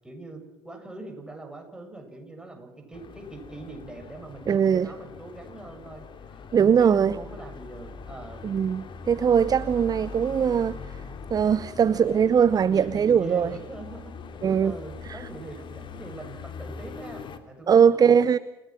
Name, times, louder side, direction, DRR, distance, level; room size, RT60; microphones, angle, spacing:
voice 1, 0.0-6.0 6.6-8.5 12.7-14.0 14.6-18.3, right 2 dB, 5° right, 7.5 m, -42 dB
sound 1, 2.9-17.4, left 5 dB, 40° left, 2.9 m, -42 dB
voice 2, 4.5-4.9 6.5-7.2 8.4-11.0 11.3-13.5 14.4-14.8 15.0-15.2 17.7-18.4, right 7 dB, 30° right, 0.6 m, -21 dB
29.0 x 17.0 x 6.1 m
hypercardioid pair, 65°, 12 cm